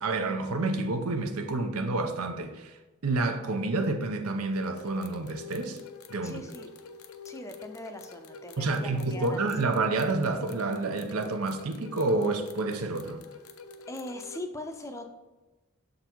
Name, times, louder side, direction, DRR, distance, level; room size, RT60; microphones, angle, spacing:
voice 1, 0.0-2.8 3.0-5.8 6.1-6.4 8.6-13.2, right 3 dB, 85° right, 0.7 m, -29 dB
sound 1, 4.6-14.4, left 5 dB, 80° left, 0.6 m, -47 dB
voice 2, 6.2-6.7 7.2-9.4 13.9-15.1, left 1 dB, 15° left, 0.5 m, -40 dB
6.8 x 3.9 x 4.5 m
head